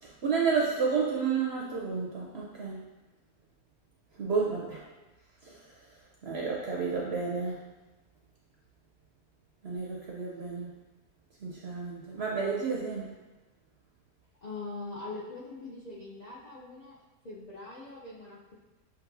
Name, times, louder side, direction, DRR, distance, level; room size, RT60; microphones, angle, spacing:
voice 1, 0.0-2.9 4.2-4.8 5.4-5.6 6.2-7.7 9.6-10.7 11.4-13.1, right 5 dB, 60° right, -3 dB, 0.7 m, -31 dB
voice 2, 14.4-17.0 17.2-18.5, left 3 dB, 50° left, -7 dB, 0.5 m, -42 dB
7.6 x 2.6 x 2.6 m, 1.2 s
omnidirectional pair, 1.6 m